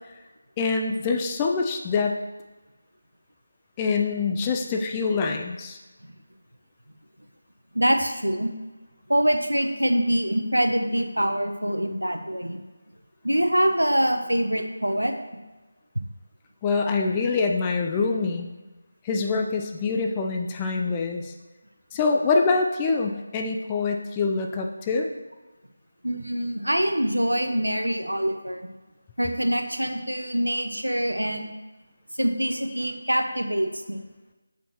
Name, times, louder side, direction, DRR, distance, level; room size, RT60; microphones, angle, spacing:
voice 1, 0.6-2.2 3.8-5.8 16.6-18.5 19.0-21.3 21.9-25.1, left 4 dB, 15° left, 2 dB, 0.4 m, -25 dB
voice 2, 7.7-8.5 9.1-12.6 13.2-15.1 16.0-16.1 26.0-28.7 29.2-31.5 32.2-34.0, equal, 85° right, 6 dB, 0.7 m, -24 dB
6.7 x 5.1 x 3.0 m, 1.2 s
figure-of-eight pair, 160°, 0 cm